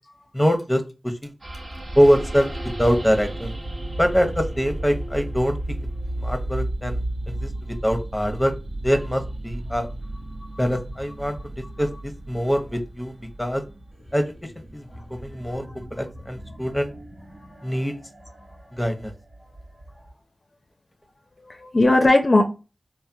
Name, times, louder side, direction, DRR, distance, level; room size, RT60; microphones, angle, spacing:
voice 1, 0.3-1.3 1.9-3.5 4.0-5.8 6.2-8.5 8.8-9.9 10.6-11.5 11.8-13.6 14.1-16.9 17.6-18.0 18.7-19.1, equal, 10° left, 6 dB, 0.7 m, -24 dB
sound 1, 1.4-20.1, right 1 dB, 60° right, 0.8 m, -34 dB
voice 2, 21.4-22.4, left 2 dB, 45° left, 5 dB, 0.4 m, -19 dB
3.3 x 2.1 x 2.7 m, 0.30 s
cardioid pair, 50°, 0 cm